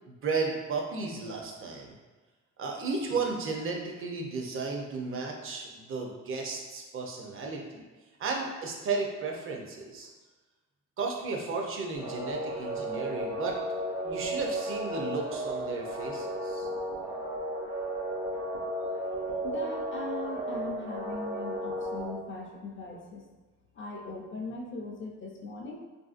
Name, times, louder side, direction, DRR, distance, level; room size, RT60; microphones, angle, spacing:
voice 1, 0.1-1.9 2.6-7.8 8.2-10.1 11.0-13.6 14.0-16.7, right 4 dB, 45° right, 0 dB, 0.6 m, -34 dB
sound 1, 12.0-22.1, right 1 dB, 75° right, 0.8 m, -34 dB
voice 2, 19.4-23.3 23.7-25.8, left 2 dB, 40° left, 0 dB, 0.5 m, -40 dB
3.0 x 2.6 x 2.4 m, 1.3 s
cardioid pair, 110°, 31 cm